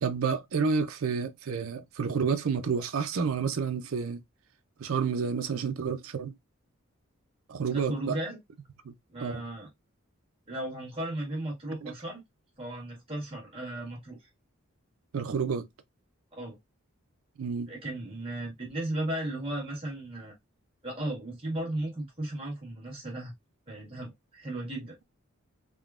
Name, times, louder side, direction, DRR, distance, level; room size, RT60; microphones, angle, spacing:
voice 1, 0.0-4.2 4.8-6.3 7.5-8.1 8.8-8.9 9.2-9.4 11.8-11.9 15.1-15.6 17.4-17.7, right 5 dB, 80° right, 0.5 m, -29 dB
voice 2, 7.7-8.4 9.1-9.7 10.5-12.2 12.6-14.3 16.3-16.6 17.7-20.3 20.8-23.3 23.7-25.0, right 1 dB, 25° right, 1.4 m, -35 dB
3.6 x 2.1 x 2.3 m
head